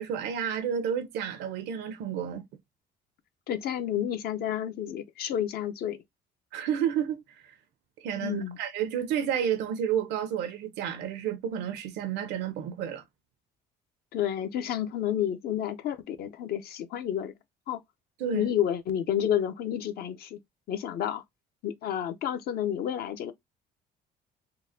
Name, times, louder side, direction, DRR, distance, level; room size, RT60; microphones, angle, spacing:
voice 1, 0.0-2.4 6.5-7.2 8.0-13.0 18.2-18.5, right 8 dB, 80° right, 0.7 m, -30 dB
voice 2, 3.5-6.0 8.2-8.6 14.1-17.3 17.7-17.8 18.3-20.4 20.7-21.2 21.6-23.3, left 10 dB, 65° left, 0.6 m, -30 dB
3.8 x 2.1 x 2.7 m
cardioid pair, 110°, 17 cm